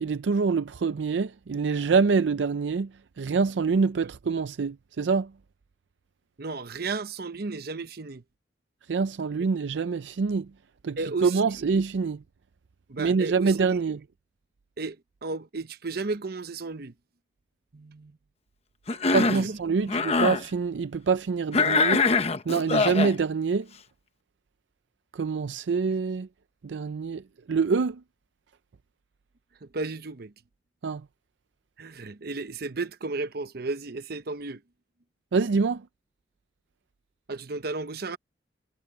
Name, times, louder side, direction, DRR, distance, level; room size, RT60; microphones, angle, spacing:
voice 1, 0.0-2.9 3.2-5.3 8.9-10.5 10.8-12.2 13.0-14.0 19.1-22.0 22.5-23.7 25.1-26.3 26.6-27.2 27.5-28.0 30.8-31.0 35.3-35.8, right 5 dB, 85° right, 0.5 m, -25 dB
voice 2, 6.4-8.2 11.0-11.4 12.9-13.8 14.8-15.0 15.2-16.9 17.7-18.2 19.1-19.6 29.6-30.3 31.8-34.6 37.3-38.2, right 3 dB, 60° right, 0.9 m, -34 dB
Cough, 18.9-19.5 19.9-20.4 21.5-23.1, left 4 dB, 35° left, 0.9 m, -23 dB
head